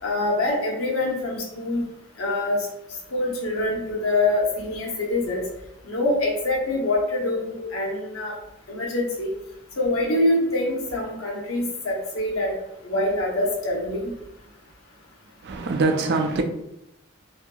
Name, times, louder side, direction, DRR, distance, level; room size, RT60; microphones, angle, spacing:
voice 1, 0.0-1.8 2.2-2.6 3.1-5.4 5.8-8.3 8.7-9.3 9.8-12.5 12.8-14.0, left 2 dB, 90° left, -1 dB, 0.8 m, -25 dB
voice 2, 15.4-16.4, right 3 dB, 55° right, 4 dB, 0.3 m, -23 dB
2.7 x 2.6 x 2.3 m, 0.85 s
head